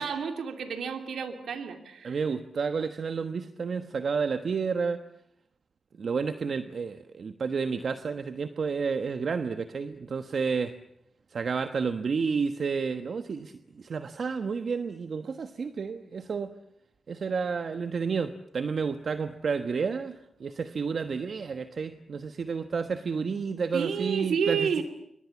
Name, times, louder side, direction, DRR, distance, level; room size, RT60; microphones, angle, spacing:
voice 1, 0.0-2.2 23.7-24.8, right 6 dB, 85° right, 5 dB, 2.7 m, -30 dB
voice 2, 2.0-5.0 6.0-10.7 11.3-16.5 17.1-24.8, right 5 dB, 65° right, 9 dB, 1.2 m, -31 dB
27.5 x 25.0 x 7.3 m, 0.76 s
cardioid pair, 60°, 0 cm